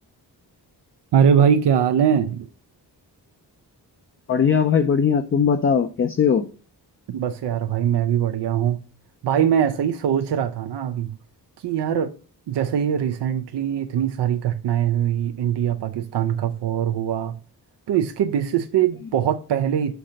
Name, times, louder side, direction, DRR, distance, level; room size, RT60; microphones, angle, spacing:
voice 1, 1.1-2.5 7.1-8.8 9.2-11.1 11.6-12.1 12.5-17.4 17.9-19.9, right 9 dB, 85° right, 0.6 m, -22 dB
voice 2, 4.3-6.5, left 7 dB, 35° left, 0.4 m, -19 dB
5.9 x 3.8 x 5.0 m
wide cardioid pair, 120°, 40 cm